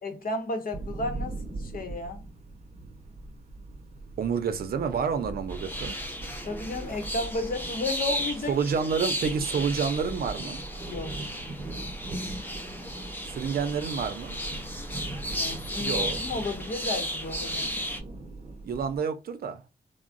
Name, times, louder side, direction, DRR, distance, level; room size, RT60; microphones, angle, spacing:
voice 1, 0.0-2.2 6.5-8.5 10.9-11.1 15.3-17.7, left 2 dB, 70° left, 0.8 m, -33 dB
sound 1, 0.7-19.0, right 2 dB, 45° right, 0.7 m, -40 dB
voice 2, 4.2-6.0 8.5-10.6 13.2-14.4 15.8-16.2 18.6-19.6, right 6 dB, 80° right, 0.5 m, -29 dB
sound 2, 5.5-18.0, equal, 15° left, 0.6 m, -35 dB
3.6 x 2.0 x 2.5 m
wide cardioid pair, 100°, 15 cm